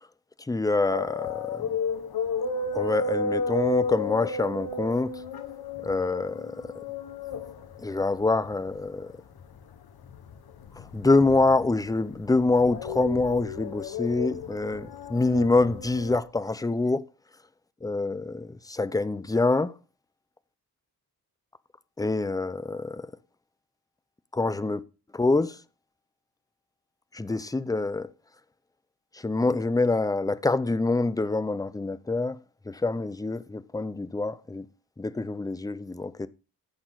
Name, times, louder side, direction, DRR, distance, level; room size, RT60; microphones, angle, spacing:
voice 1, 0.5-1.7 2.7-5.1 5.8-6.7 7.8-9.1 10.9-17.0 17.8-19.7 22.0-23.1 24.3-24.8 25.1-25.6 27.1-28.1 29.2-32.4 32.7-34.7 35.0-36.3, left 3 dB, 10° left, 0.5 m, -25 dB
sound 1, 0.8-16.2, left 3 dB, 70° left, 1.2 m, -33 dB
13.5 x 6.1 x 3.9 m
wide cardioid pair, 115°, 39 cm